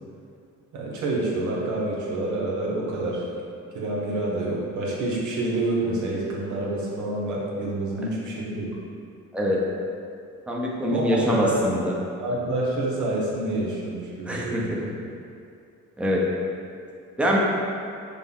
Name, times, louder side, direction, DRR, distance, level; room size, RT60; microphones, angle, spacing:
voice 1, 0.7-3.2 3.7-8.7 10.9-11.7 12.2-14.7, right 2 dB, 75° right, -4 dB, 1.0 m, -27 dB
voice 2, 10.5-11.9 14.3-14.8 16.0-16.2 17.2-17.4, equal, 5° right, -4 dB, 0.8 m, -24 dB
6.4 x 2.2 x 3.6 m, 2.4 s
cardioid pair, 90°, 30 cm